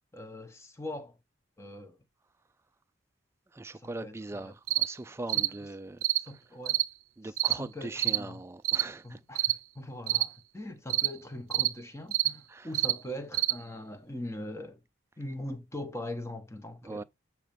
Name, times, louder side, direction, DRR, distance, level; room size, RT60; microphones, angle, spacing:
voice 1, 0.1-1.2 1.6-2.0 3.7-4.5 5.4-5.5 6.2-6.8 7.6-8.4 9.0-14.8 15.2-17.0, left 1 dB, 15° left, 0.9 m, -41 dB
voice 2, 3.5-6.0 7.2-9.2 12.5-12.7 16.8-17.0, right 2 dB, 15° right, 0.3 m, -40 dB
sound 1, 4.7-4.9 5.3-5.5 6.0-6.2 6.7-6.9 7.4-7.6 8.0-8.2 8.6-8.9 9.4-9.6 10.1-10.3 10.9-11.1 11.5-11.7 12.1-12.3 12.7-13.0 13.3-13.6, right 16 dB, 90° right, 0.5 m, -27 dB
7.8 x 3.1 x 5.1 m
head